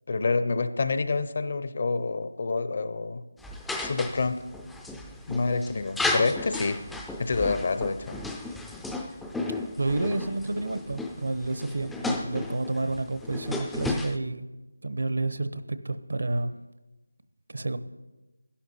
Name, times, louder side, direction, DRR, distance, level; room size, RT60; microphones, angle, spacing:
voice 1, 0.1-3.2 3.8-4.4 5.3-6.8 7.2-8.2, left 4 dB, 40° left, 11 dB, 0.6 m, -27 dB
sound 1, 3.4-14.2, left 2 dB, ahead, 0.4 m, -34 dB
voice 2, 9.8-14.5 14.8-16.5 17.5-17.8, right 2 dB, 65° right, 11 dB, 0.8 m, -30 dB
12.5 x 11.5 x 4.2 m, 1.1 s
figure-of-eight pair, 170°, 0 cm